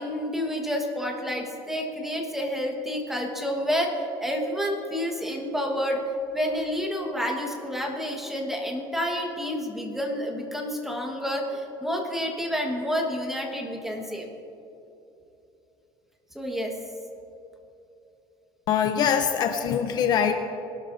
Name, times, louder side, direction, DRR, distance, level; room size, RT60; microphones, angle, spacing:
voice 1, 0.0-6.0 6.3-14.3 16.3-16.8, equal, 5° right, 1 dB, 1.4 m, -29 dB
voice 2, 18.7-20.3, left 8 dB, 40° left, 6 dB, 0.7 m, -23 dB
20.5 x 12.5 x 2.7 m, 2.9 s
cardioid pair, 160°, 10 cm